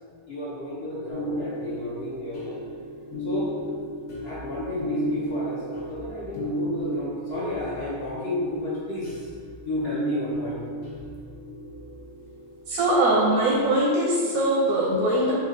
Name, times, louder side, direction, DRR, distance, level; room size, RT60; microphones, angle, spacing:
voice 1, 0.3-2.6 3.2-3.5 4.2-9.3 9.6-10.6, left 1 dB, 55° left, -8 dB, 0.8 m, -32 dB
sound 1, 1.1-12.7, equal, 80° left, 1.3 m, -34 dB
voice 2, 12.7-15.3, right 1 dB, 85° right, -4 dB, 1.1 m, -21 dB
3.3 x 2.7 x 3.7 m, 2.1 s
omnidirectional pair, 1.5 m